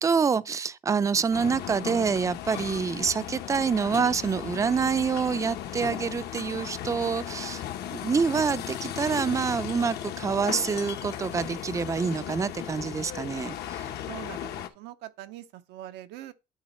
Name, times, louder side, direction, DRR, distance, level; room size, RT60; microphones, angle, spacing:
voice 1, 0.0-7.6 7.9-13.8, right 5 dB, 20° right, 0.4 m, -27 dB
sound 1, 1.3-14.7, left 10 dB, 75° left, 1.0 m, -36 dB
voice 2, 14.0-16.3, right 14 dB, 90° right, 0.7 m, -43 dB
10.5 x 4.0 x 4.2 m
cardioid pair, 110°, 17 cm